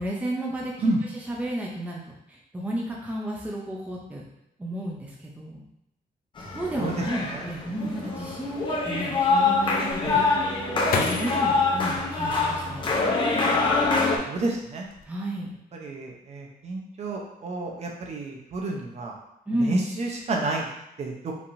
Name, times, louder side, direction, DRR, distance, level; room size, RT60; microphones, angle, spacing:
voice 1, 0.0-2.0 2.3-4.2 4.6-5.6 6.4-10.4 10.9-12.9 15.1-15.5 19.5-19.9, right 1 dB, 10° right, -2 dB, 0.6 m, -32 dB
sound 1, 6.4-14.2, left 3 dB, 30° left, 0.8 m, -25 dB
sound 2, 9.9-13.0 13.5-14.3 14.6-15.0, left 4 dB, 60° left, 0.6 m, -33 dB
voice 2, 14.3-14.9 15.8-19.1 19.6-20.7 21.0-21.3, right 2 dB, 40° right, 0 dB, 0.8 m, -30 dB
5.5 x 3.5 x 2.6 m, 0.80 s
cardioid pair, 170°, 17 cm